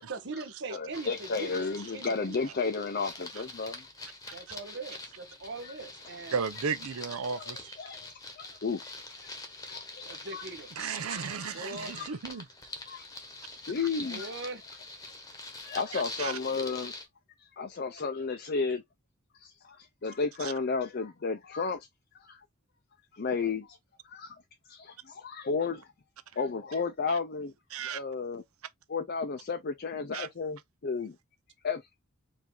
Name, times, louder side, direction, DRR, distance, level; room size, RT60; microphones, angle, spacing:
voice 1, 0.1-2.6 4.3-6.4 10.0-10.7 11.5-12.0 14.1-14.6, right 3 dB, 55° right, 0.9 m, -41 dB
voice 2, 0.7-3.8 5.6-5.7 7.2-9.3 9.6-10.4 11.1-12.1 12.9-13.1 13.5-14.3 15.6-16.9 17.4-18.8 19.4-21.9 22.2-22.4 23.1-23.8 24.0-24.3 24.7-25.9 26.4-27.5 27.8-28.4 28.9-31.2 31.6-32.0, left 4 dB, 45° left, 0.5 m, -33 dB
sound 1, 0.9-17.1, left 2 dB, 15° left, 1.0 m, -45 dB
voice 3, 6.3-7.8 10.8-12.4 15.9-16.3 20.4-20.5 27.1-27.2 27.7-28.0 30.1-30.3, right 6 dB, 80° right, 0.6 m, -35 dB
4.7 x 2.7 x 3.8 m
head